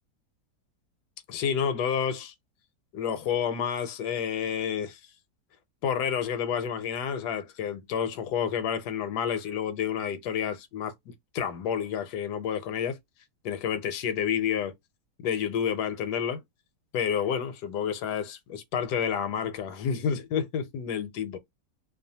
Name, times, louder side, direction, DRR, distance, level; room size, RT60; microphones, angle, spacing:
voice 1, 1.3-2.3 2.9-5.0 5.8-13.0 13.4-14.7 15.2-16.4 16.9-21.4, left 8 dB, 80° left, 1.1 m, -29 dB
2.7 x 2.2 x 2.7 m
omnidirectional pair, 1.8 m